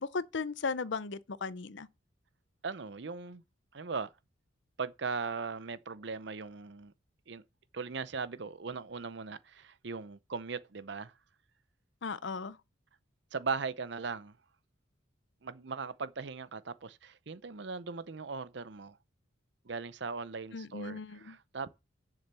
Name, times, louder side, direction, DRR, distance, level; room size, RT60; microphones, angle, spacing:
voice 1, 0.0-1.9 12.0-12.6 20.5-21.4, left 4 dB, 60° left, 0.6 m, -36 dB
voice 2, 2.6-3.4 3.7-4.1 4.8-6.9 7.3-7.4 7.7-11.1 13.3-14.3 15.4-19.0 19.6-21.7, right 4 dB, 60° right, 0.6 m, -39 dB
7.1 x 6.8 x 6.8 m
head